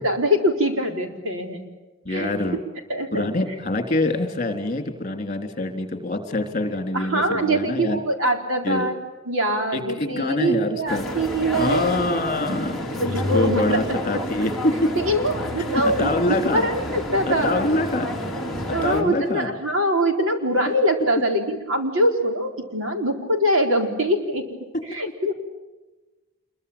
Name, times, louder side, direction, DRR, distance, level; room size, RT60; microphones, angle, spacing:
voice 1, 0.0-1.6 2.1-2.3 2.9-3.3 6.9-9.0 9.3-12.0 13.0-13.8 14.1-14.2 15.0-16.1 16.5-17.6 18.7-25.3, equal, 60° right, 4 dB, 4.1 m, -23 dB
voice 2, 2.1-2.6 3.1-8.0 8.6-8.9 9.7-11.1 11.6-14.8 15.7-16.7 17.2-18.2 18.7-19.5, left 2 dB, 35° left, 6 dB, 3.6 m, -25 dB
sound 1, 10.9-19.0, equal, ahead, 4.2 m, -29 dB
27.0 x 23.0 x 8.8 m, 1.2 s
head